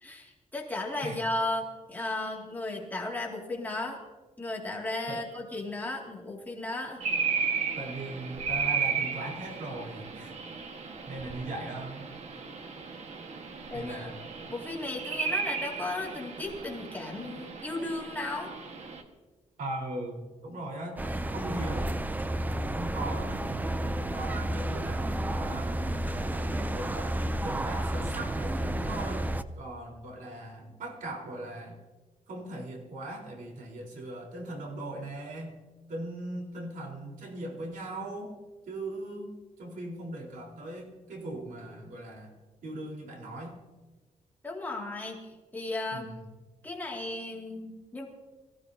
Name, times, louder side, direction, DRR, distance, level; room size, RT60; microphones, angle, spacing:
voice 1, 0.0-4.0 4.4-7.0 13.7-14.1 14.5-18.5 44.4-45.2 45.5-46.1 46.6-48.1, left 2 dB, 10° left, -2 dB, 2.3 m, -35 dB
sound 1, 7.0-19.0, right 6 dB, 55° right, 1.5 m, -34 dB
voice 2, 7.7-10.3 11.1-12.0 13.7-14.2 19.6-21.0 21.3-21.9 22.8-25.8 26.1-29.3 29.6-31.8 32.3-35.6 35.9-38.3 38.7-42.3 42.6-43.5 45.9-46.3, right 1 dB, 75° right, -1 dB, 4.1 m, -39 dB
sound 2, 21.0-29.4, right 1 dB, 10° right, 0.5 m, -31 dB
23.5 x 15.5 x 2.8 m, 1.3 s
wide cardioid pair, 155°, 14 cm